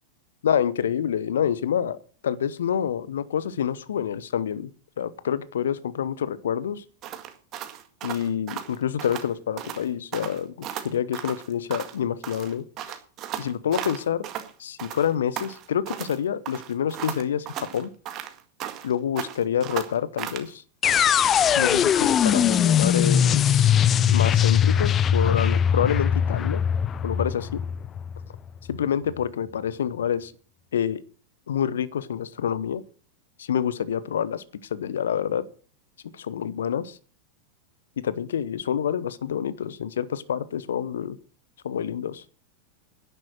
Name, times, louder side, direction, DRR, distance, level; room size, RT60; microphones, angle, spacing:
voice 1, 0.4-2.0 2.2-4.7 5.0-6.8 8.0-13.0 13.4-14.3 14.6-17.9 18.8-20.6 21.6-23.7 24.0-26.6 27.0-27.6 28.7-30.3 30.7-31.0 31.5-32.8 33.4-34.4 34.7-35.4 36.1-37.0 38.0-41.2 41.6-42.2, left 8 dB, 65° left, 18 dB, 1.0 m, -27 dB
sound 1, 7.0-9.3 9.6-9.8 10.1-12.0 12.2-14.5 14.8-16.2 16.5-18.9 19.2-20.5, right 10 dB, 35° right, 1.9 m, -35 dB
sound 2, 20.8-28.8, left 8 dB, 25° left, 0.6 m, -21 dB
11.0 x 10.5 x 6.4 m, 0.40 s
figure-of-eight pair, 90°, 0 cm